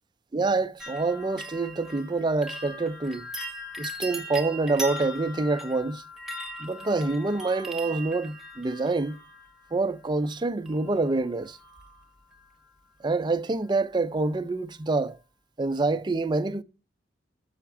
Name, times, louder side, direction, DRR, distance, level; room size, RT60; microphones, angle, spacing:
voice 1, 0.3-3.3 3.8-6.0 6.6-9.2 9.7-11.6 13.0-15.2 15.6-16.6, right 3 dB, 25° right, 0.4 m, -26 dB
sound 1, 0.8-9.7 10.7-11.2 11.4-12.0 12.3-12.4, equal, ahead, 1.2 m, -39 dB
6.9 x 5.7 x 7.1 m
head